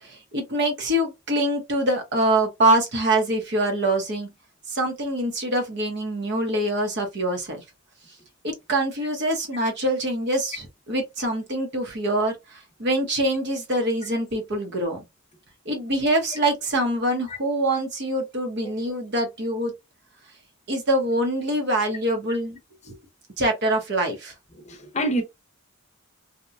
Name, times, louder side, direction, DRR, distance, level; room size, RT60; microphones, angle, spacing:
voice 1, 0.0-4.3 4.7-7.6 8.4-15.0 15.7-19.7 20.7-22.6 22.9-23.0 23.4-24.3, right 1 dB, 55° right, 0.8 m, -24 dB
voice 2, 24.7-25.2, right 1 dB, 35° left, 0.7 m, -26 dB
2.8 x 2.2 x 2.5 m
head